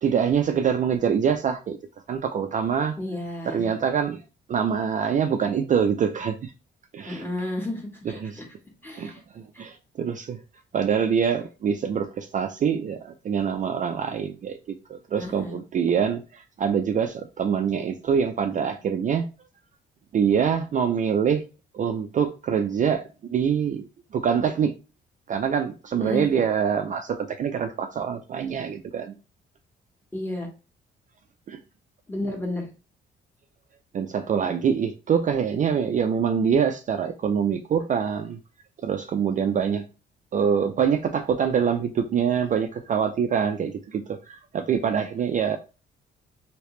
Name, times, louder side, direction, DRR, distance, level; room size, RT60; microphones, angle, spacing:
voice 1, 0.0-1.8 2.1-3.0 3.5-4.2 4.5-6.5 6.9-7.2 8.1-8.4 9.0-10.4 10.7-19.3 20.1-21.4 21.7-23.9 24.1-24.7 25.3-29.1 31.5-31.6 33.9-38.4 38.8-39.8 40.3-45.6, right 7 dB, 40° right, 0.4 m, -25 dB
voice 2, 3.0-3.7 7.0-8.4 8.8-9.2 9.5-9.6 15.2-15.6 26.0-26.3 30.1-30.5 32.1-32.7, left 1 dB, 10° left, 1.3 m, -32 dB
3.1 x 2.8 x 3.1 m
cardioid pair, 90°, 20 cm